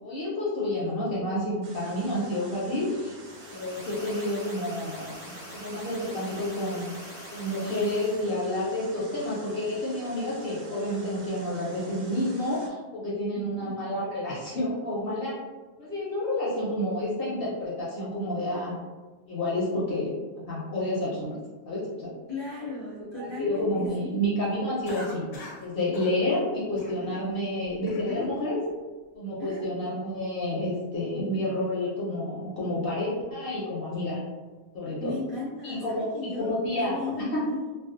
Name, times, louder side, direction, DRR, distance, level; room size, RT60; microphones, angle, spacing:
voice 1, 0.0-3.1 3.5-5.1 5.5-6.9 7.3-15.3 15.8-18.8 19.3-21.4 21.7-22.1 23.0-25.2 25.6-28.7 29.1-34.2 34.7-35.2 35.6-37.0 37.3-37.4, left 1 dB, 60° left, -6 dB, 0.7 m, -29 dB
sound 1, 1.6-12.7, right 1 dB, 80° right, 0.4 m, -48 dB
sound 2, 3.2-8.3, equal, 15° left, 0.3 m, -44 dB
voice 2, 13.3-13.7 22.3-24.2 29.4-29.6 35.0-37.7, left 2 dB, 30° right, -9 dB, 0.6 m, -36 dB
Cough, 24.8-25.6 25.9-26.1 26.8-27.2 27.6-28.3, left 2 dB, 80° left, 1.0 m, -39 dB
2.4 x 2.2 x 2.4 m, 1.3 s
omnidirectional pair, 1.3 m